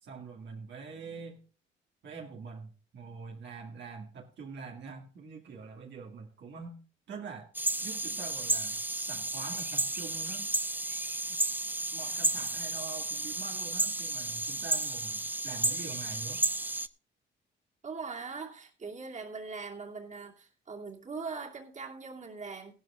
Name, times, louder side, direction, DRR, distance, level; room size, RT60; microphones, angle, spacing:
voice 1, 0.0-1.4 2.0-6.8 7.1-7.5 7.8-10.5 11.3-11.4 11.9-16.5, right 5 dB, 65° right, 2.0 m, -45 dB
sound 1, 7.5-16.9, right 2 dB, 10° right, 0.6 m, -32 dB
voice 2, 17.8-22.7, right 4 dB, 40° right, 2.6 m, -41 dB
15.5 x 12.5 x 2.4 m
cardioid pair, 90°, 20 cm